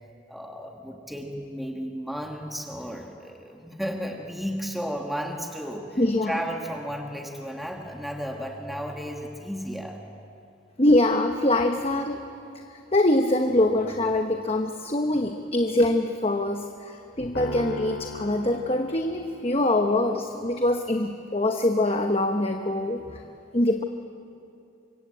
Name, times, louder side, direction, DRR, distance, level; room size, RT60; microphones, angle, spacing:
voice 1, 0.3-10.0, equal, ahead, 2 dB, 1.6 m, -34 dB
voice 2, 6.0-6.3 10.8-12.2 12.7-23.2 23.5-23.8, left 1 dB, 30° left, 4 dB, 1.0 m, -24 dB
sound 1, 17.3-19.7, left 1 dB, 80° left, 3.2 m, -37 dB
25.5 x 23.5 x 8.5 m, 2.7 s
head